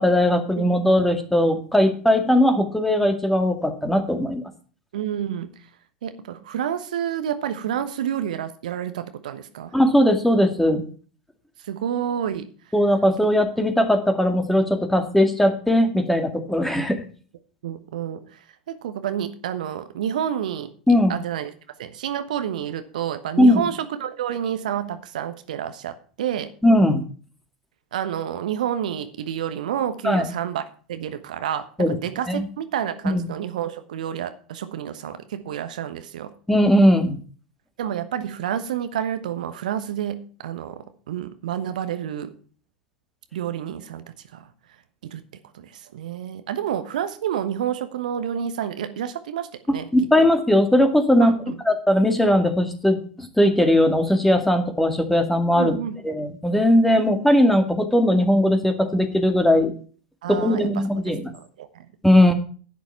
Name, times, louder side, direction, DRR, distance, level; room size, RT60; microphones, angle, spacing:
voice 1, 0.0-4.4 9.7-10.9 12.7-17.0 20.9-21.1 23.4-23.6 26.6-27.0 30.0-30.3 31.8-32.0 32.3-32.4 33.1-33.3 36.5-37.2 49.7-51.3 51.7-55.8 56.0-59.7 60.3-61.2 62.0-62.3, left 1 dB, 5° left, 2.1 m, -19 dB
voice 2, 4.9-5.7 6.0-9.8 11.6-12.5 17.6-20.7 21.1-21.5 21.8-26.5 27.9-30.6 30.9-36.3 37.8-42.4 43.3-44.5 45.0-45.3 45.5-50.1 51.2-51.5 55.6-56.0 60.2-60.9 61.3-61.9, right 9 dB, 65° right, 1.1 m, -29 dB
11.0 x 9.8 x 4.5 m
figure-of-eight pair, 85°, 5 cm